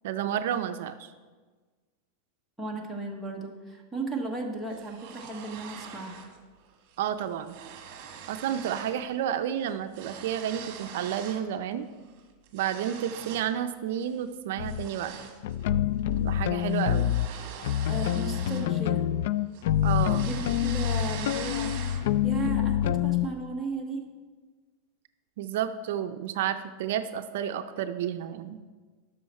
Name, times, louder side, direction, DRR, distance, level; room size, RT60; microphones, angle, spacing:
voice 1, 0.0-1.1 7.0-7.6 8.3-11.9 12.5-15.2 16.2-17.1 19.8-20.3 25.4-28.6, right 10 dB, 65° right, 9 dB, 0.5 m, -31 dB
voice 2, 2.6-6.2 17.9-19.1 20.1-21.8 22.2-24.1, right 2 dB, ahead, -3 dB, 1.1 m, -35 dB
sound 1, 4.7-6.4 6.7-7.0 7.2-9.0 9.3-11.5 11.9-13.6 14.0-14.2 14.7-19.2 19.5-22.2, right 7 dB, 45° right, 1.4 m, -43 dB
sound 2, 14.6-14.9 15.4-17.3 17.6-23.3, left 11 dB, 65° left, 0.3 m, -26 dB
12.0 x 6.3 x 4.3 m, 1.4 s
supercardioid pair, 160°, 0 cm